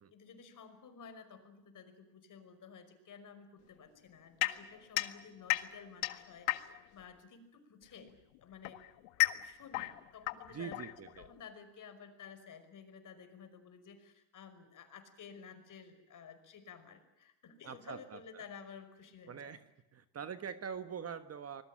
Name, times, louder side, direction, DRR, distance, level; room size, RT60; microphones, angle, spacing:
voice 1, 0.1-8.1 8.4-8.8 9.2-19.6, left 6 dB, 40° left, 9 dB, 5.5 m, -53 dB
sound 1, 4.4-7.0 8.0-11.4, left 20 dB, 70° left, 1.8 m, -35 dB
voice 2, 10.5-11.3 17.6-18.4 19.3-19.6 19.9-21.6, right 7 dB, 30° right, 11 dB, 1.4 m, -44 dB
25.5 x 20.5 x 8.8 m, 0.93 s
supercardioid pair, 115°, 49 cm